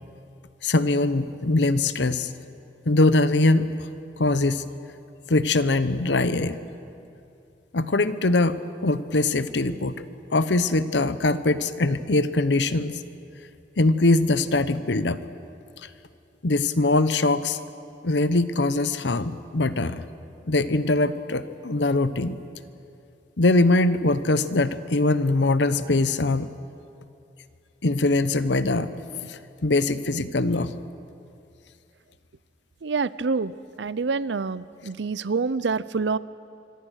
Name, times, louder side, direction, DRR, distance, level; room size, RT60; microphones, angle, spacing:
voice 1, 0.6-2.3 2.9-3.7 4.2-4.6 5.3-6.6 7.7-10.0 10.3-12.9 13.8-15.2 16.4-17.6 18.0-20.0 20.5-22.4 23.4-26.5 27.8-30.8, left 2 dB, 80° left, 13 dB, 0.9 m, -22 dB
voice 2, 32.8-33.5 33.8-36.2, right 4 dB, 85° right, 18 dB, 0.6 m, -26 dB
26.0 x 23.5 x 6.5 m, 2.6 s
head